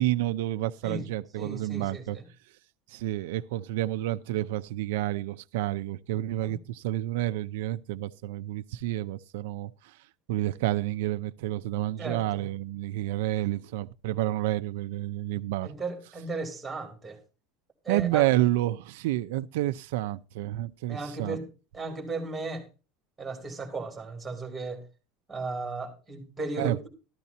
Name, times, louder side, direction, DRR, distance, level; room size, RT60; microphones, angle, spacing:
voice 1, 0.0-2.2 2.9-10.0 10.3-15.7 17.9-21.4 26.6-26.8, right 15 dB, 90° right, 0.5 m, -29 dB
voice 2, 1.4-2.2 6.4-6.5 12.0-12.5 15.6-17.2 17.8-18.2 20.9-21.5 21.7-22.7 23.2-24.8 25.3-26.9, right 3 dB, 5° right, 2.9 m, -35 dB
13.5 x 13.0 x 2.8 m
cardioid pair, 170°, 0 cm